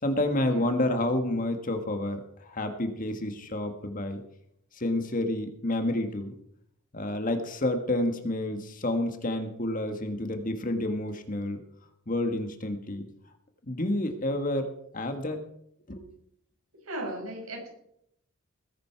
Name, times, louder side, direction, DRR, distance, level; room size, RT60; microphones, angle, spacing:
voice 1, 0.0-4.2 4.7-6.3 6.9-11.6 12.1-13.1 13.7-15.4 15.9-16.1, left 1 dB, 40° left, 7 dB, 1.7 m, -29 dB
voice 2, 16.8-17.7, right 1 dB, 90° right, 1 dB, 5.8 m, -36 dB
20.0 x 10.5 x 4.6 m, 0.74 s
head